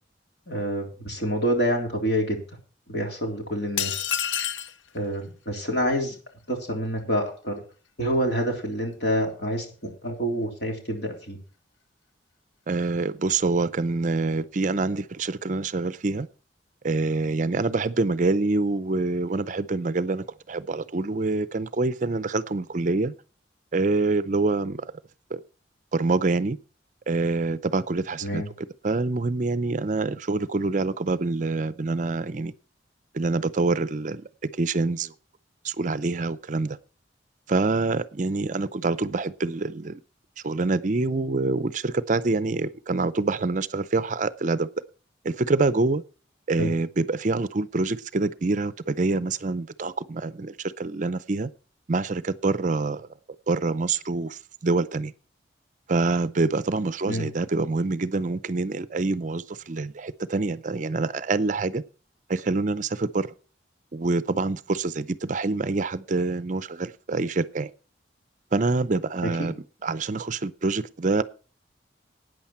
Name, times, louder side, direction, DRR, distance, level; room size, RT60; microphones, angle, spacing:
voice 1, 0.5-2.4 2.9-4.1 4.9-6.2 6.5-7.6 8.0-11.4 28.2-28.5 46.6-46.7 57.1-57.3 69.4-69.5, equal, 60° left, 3.5 m, -27 dB
sound 1, 3.8-4.8, left 10 dB, 80° left, 0.5 m, -27 dB
voice 2, 12.7-16.3 16.8-23.1 23.7-24.9 25.3-25.4 25.9-26.6 27.1-28.4 28.8-32.5 33.1-35.1 35.6-36.8 37.5-40.0 40.4-44.7 45.2-46.0 46.5-51.5 51.9-53.1 53.5-55.1 55.9-61.8 62.3-63.3 63.9-67.7 68.5-69.5 69.8-71.2, right 3 dB, 40° right, 0.5 m, -26 dB
13.0 x 9.2 x 4.3 m
head